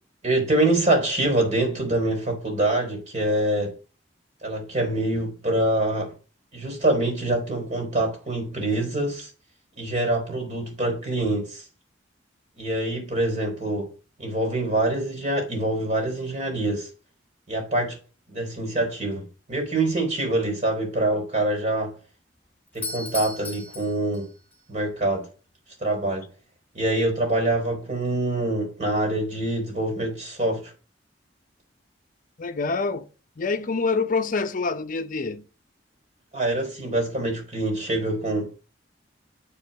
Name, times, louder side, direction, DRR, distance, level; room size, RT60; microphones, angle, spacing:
voice 1, 0.2-3.7 4.4-6.1 6.5-9.3 9.8-11.6 12.6-13.9 14.2-16.9 17.5-18.0 18.3-21.9 22.7-24.3 24.7-25.3 25.8-26.3 26.7-30.7 36.3-38.5, right 1 dB, 40° right, 3.6 m, -25 dB
Doorbell, 22.7-24.6, left 4 dB, 10° left, 2.0 m, -36 dB
voice 2, 32.4-33.1 33.4-35.5, left 4 dB, 45° left, 0.6 m, -26 dB
8.4 x 5.0 x 5.1 m
head